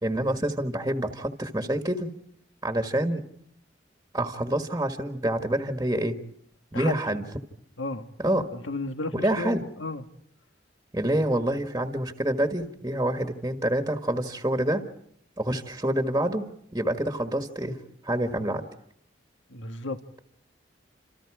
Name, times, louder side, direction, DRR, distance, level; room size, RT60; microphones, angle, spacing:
voice 1, 0.0-2.1 2.6-3.2 4.1-6.2 6.7-7.2 8.2-8.5 9.1-9.6 10.9-14.8 15.4-18.6, right 1 dB, 15° right, 1.7 m, -27 dB
voice 2, 6.7-7.2 7.8-8.1 8.5-10.1 19.5-20.0, left 2 dB, 90° left, 1.9 m, -33 dB
29.0 x 27.5 x 5.0 m
head